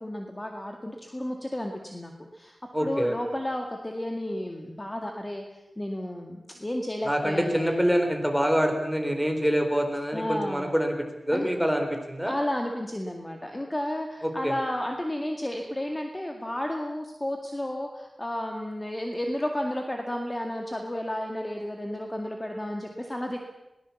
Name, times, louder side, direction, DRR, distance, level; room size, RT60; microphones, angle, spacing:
voice 1, 0.0-7.8 10.1-10.7 11.3-11.5 12.3-23.4, left 1 dB, 20° left, 2 dB, 2.1 m, -32 dB
voice 2, 2.7-3.2 7.0-10.9 11.3-12.3 14.2-14.5, equal, ahead, 4 dB, 4.0 m, -25 dB
21.5 x 18.5 x 7.2 m, 0.99 s
wide cardioid pair, 85°, 0 cm